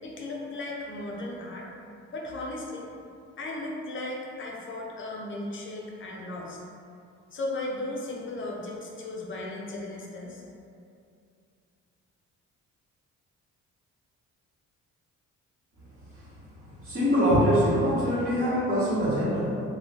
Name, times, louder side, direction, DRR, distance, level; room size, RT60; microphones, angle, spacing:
voice 1, 0.0-1.7 2.1-2.9 3.4-6.6 7.3-10.4, left 2 dB, 40° left, -2 dB, 0.6 m, -36 dB
voice 2, 16.7-19.6, equal, 30° right, -13 dB, 1.0 m, -24 dB
3.2 x 2.2 x 2.8 m, 2.5 s
cardioid pair, 90°, 30 cm